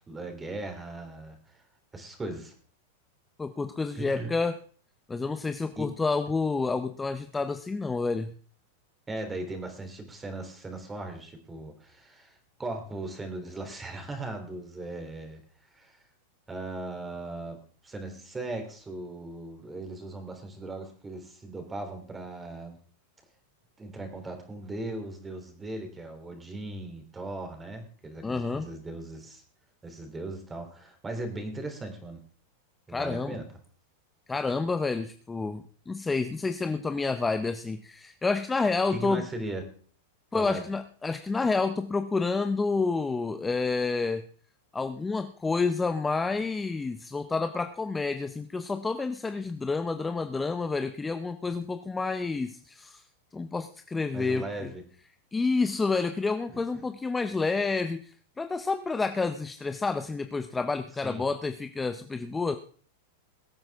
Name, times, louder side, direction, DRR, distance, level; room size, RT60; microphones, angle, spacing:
voice 1, 0.1-1.4 1.9-2.5 3.9-4.3 5.8-5.9 9.1-15.4 15.7-16.0 16.5-17.6 17.8-22.8 23.8-29.4 29.8-32.2 32.9-33.4 38.9-39.6 40.3-40.7 54.1-54.8 56.5-56.8 61.0-61.3, right 2 dB, 15° right, 5 dB, 3.3 m, -38 dB
voice 2, 3.4-4.5 5.1-8.3 28.2-28.7 32.9-33.4 34.3-39.2 40.3-44.2 44.7-53.0 53.3-54.7 55.3-62.6, left 4 dB, 10° left, 9 dB, 0.7 m, -29 dB
22.0 x 8.7 x 3.6 m, 0.43 s
hypercardioid pair, 120°, 0 cm